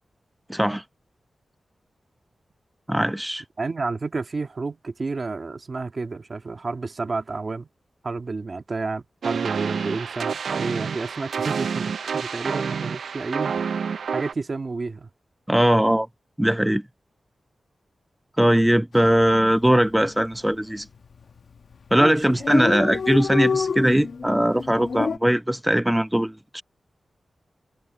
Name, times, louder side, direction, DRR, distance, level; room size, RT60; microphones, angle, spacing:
voice 1, 0.5-0.8 2.9-3.4 15.5-16.1 16.4-16.8 18.4-20.8 21.9-26.6, right 1 dB, 5° right, 0.8 m, -20 dB
voice 2, 3.6-7.7 8.0-15.1 22.0-22.4, right 3 dB, 45° right, 1.6 m, -31 dB
sound 1, 9.2-14.3, right 6 dB, 85° right, 0.3 m, -28 dB
Dog, 18.9-19.2 19.5-19.6 19.8-20.5 21.1-21.4 21.7-21.8 22.0-22.1 22.2-25.2, left 5 dB, 70° left, 1.1 m, -27 dB
wide cardioid pair, 95°, 0 cm